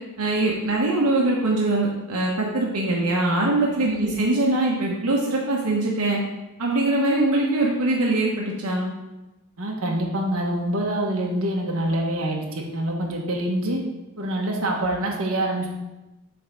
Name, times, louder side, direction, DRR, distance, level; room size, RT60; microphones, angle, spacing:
voice 1, 0.2-6.2 6.6-8.9, right 2 dB, 85° right, -2 dB, 1.0 m, -22 dB
voice 2, 3.8-4.2 9.6-13.8 14.2-15.7, right 1 dB, 65° right, -1 dB, 1.2 m, -26 dB
7.7 x 3.5 x 5.2 m, 1.0 s
head